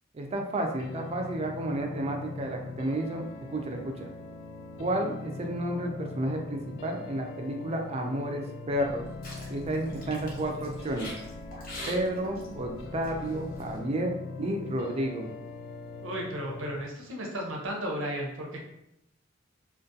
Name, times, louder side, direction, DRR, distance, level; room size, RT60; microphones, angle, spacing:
voice 1, 0.1-4.1 4.8-9.1 9.5-11.1 11.9-14.1 14.4-15.3, right 1 dB, 30° right, 2 dB, 0.3 m, -31 dB
sound 1, 0.8-16.8, left 3 dB, 75° left, 0.3 m, -41 dB
sound 2, 8.7-13.8, left 1 dB, 50° left, 0.7 m, -44 dB
voice 2, 16.0-18.6, equal, 80° right, 0 dB, 0.6 m, -34 dB
2.3 x 2.2 x 2.6 m, 0.83 s
head